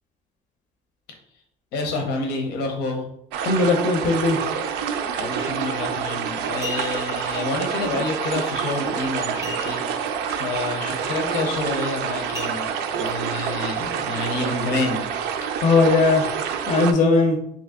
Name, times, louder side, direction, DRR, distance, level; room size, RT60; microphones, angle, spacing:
voice 1, 1.7-3.0 5.2-15.1 15.4-15.6, left 3 dB, 90° left, 3 dB, 0.7 m, -29 dB
sound 1, 3.3-16.9, right 7 dB, 85° right, 0.4 m, -27 dB
voice 2, 3.5-4.4 15.6-16.2 16.7-17.4, left 3 dB, 50° left, 3 dB, 0.5 m, -18 dB
sound 2, 5.8-6.0 6.4-7.2 9.4-10.1 10.4-10.5 11.0-11.3 12.3-13.1 13.7-13.8, left 2 dB, 15° right, 0.4 m, -37 dB
2.9 x 2.6 x 3.5 m, 0.74 s
cardioid pair, 110°, 17 cm